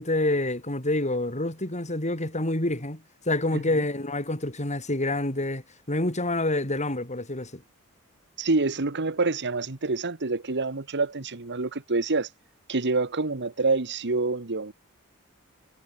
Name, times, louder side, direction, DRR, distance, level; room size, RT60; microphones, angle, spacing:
voice 1, 0.0-7.6, left 2 dB, 30° left, 6.8 m, -27 dB
voice 2, 8.4-12.3 12.7-14.7, right 3 dB, 55° right, 1.5 m, -27 dB
head